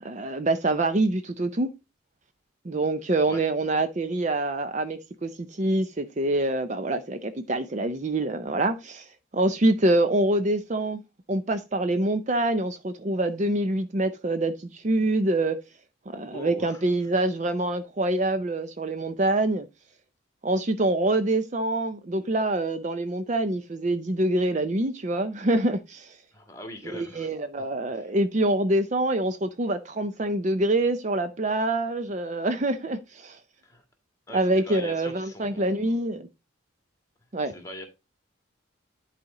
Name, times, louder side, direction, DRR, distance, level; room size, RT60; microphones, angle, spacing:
voice 1, 0.0-1.7 2.6-11.0 11.3-15.6 16.1-19.7 20.4-26.2 26.9-33.4 34.3-36.3 37.3-37.5, right 2 dB, 35° right, 0.5 m, -25 dB
voice 2, 16.3-17.2 26.3-27.3 27.9-28.1 33.6-33.8 34.3-35.9 37.4-37.9, left 1 dB, 15° left, 1.7 m, -42 dB
11.0 x 4.2 x 3.7 m
head